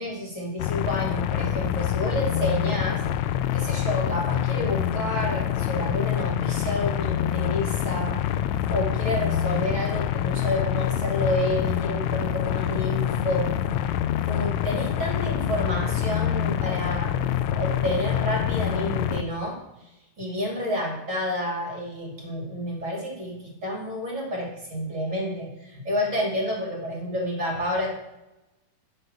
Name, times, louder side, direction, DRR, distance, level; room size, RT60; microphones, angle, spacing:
voice 1, 0.0-3.0 3.5-8.2 8.7-13.5 14.3-19.9 20.2-27.9, left 1 dB, 25° right, -2 dB, 2.6 m, -29 dB
sound 1, 0.6-19.2, left 10 dB, 90° left, 1.5 m, -26 dB
9.8 x 5.4 x 6.4 m, 0.95 s
omnidirectional pair, 3.8 m